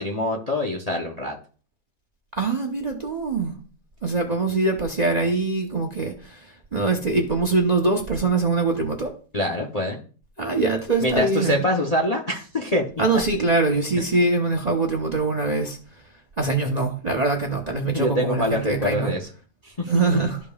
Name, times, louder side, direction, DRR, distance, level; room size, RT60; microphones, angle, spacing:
voice 1, 0.0-1.4 9.3-10.0 11.0-12.9 14.0-14.1 17.8-19.3 19.6-20.2, left 1 dB, 35° left, 0.6 m, -25 dB
voice 2, 2.4-3.5 4.0-9.1 10.4-11.6 13.0-16.0 16.4-19.1 19.9-20.4, right 3 dB, 35° right, 0.7 m, -23 dB
13.0 x 5.2 x 2.3 m
omnidirectional pair, 1.7 m